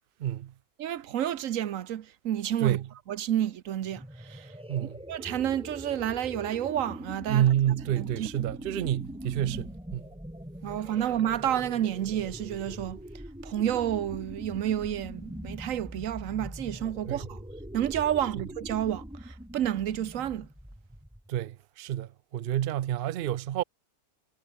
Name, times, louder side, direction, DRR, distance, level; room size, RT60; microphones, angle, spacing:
voice 1, 0.2-0.5 2.6-2.9 4.7-5.0 7.3-10.0 17.1-17.3 21.3-23.6, right 11 dB, 85° right, 0.5 m, -28 dB
voice 2, 0.8-2.8 3.1-4.5 5.1-7.5 8.0-8.8 10.6-13.0 13.4-17.4 17.7-20.5, right 11 dB, 65° right, 1.1 m, -30 dB
sound 1, 3.9-21.4, equal, 5° right, 2.7 m, -43 dB
omnidirectional pair, 1.6 m